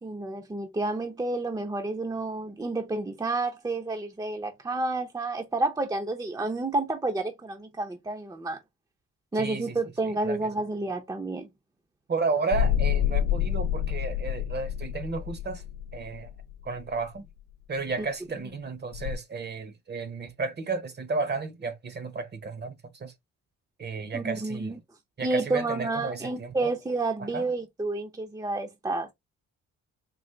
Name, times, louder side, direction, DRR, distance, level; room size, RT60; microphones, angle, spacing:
voice 1, 0.0-8.6 9.3-11.5 18.0-18.1 24.1-24.8 25.2-29.1, right 2 dB, 10° right, 0.7 m, -30 dB
voice 2, 9.3-9.8 10.0-10.5 12.1-15.6 15.9-16.3 16.6-17.3 17.7-23.1 23.8-24.8 25.2-26.7 27.2-27.4, right 4 dB, 35° right, 0.9 m, -33 dB
sound 1, 12.5-17.0 18.9-19.2, left 10 dB, 60° left, 0.5 m, -28 dB
3.9 x 2.4 x 3.1 m
cardioid pair, 90°, 30 cm